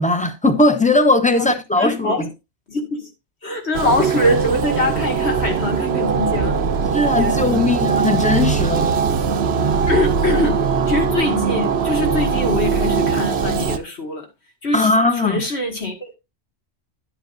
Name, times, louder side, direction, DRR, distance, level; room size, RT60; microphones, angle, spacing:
voice 1, 0.0-2.3 6.9-8.9 14.7-15.4, left 2 dB, 5° left, 0.9 m, -18 dB
voice 2, 1.8-2.3 2.7-3.1 3.4-6.6 7.1-7.8 9.9-10.6 10.9-14.3 14.6-14.9 15.2-16.1, left 2 dB, 60° left, 2.4 m, -23 dB
sound 1, 3.7-13.8, right 6 dB, 60° right, 1.0 m, -20 dB
11.5 x 8.0 x 2.6 m
omnidirectional pair, 1.3 m